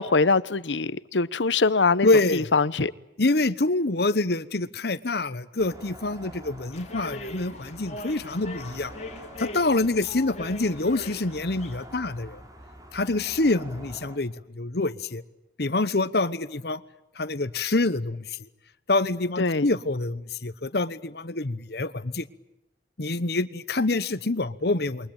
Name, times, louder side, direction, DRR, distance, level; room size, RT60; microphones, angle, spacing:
voice 1, 0.0-2.9 19.4-19.7, left 4 dB, 90° left, 1.0 m, -23 dB
voice 2, 2.0-2.5 3.2-8.9 9.4-12.4 12.9-15.2 15.6-16.8 17.2-18.4 18.9-22.3 23.0-25.1, left 2 dB, 60° left, 1.1 m, -26 dB
sound 1, 5.6-14.2, equal, 20° right, 3.6 m, -46 dB
sound 2, 6.7-11.9, left 2 dB, 40° left, 2.8 m, -40 dB
28.5 x 23.0 x 8.9 m
head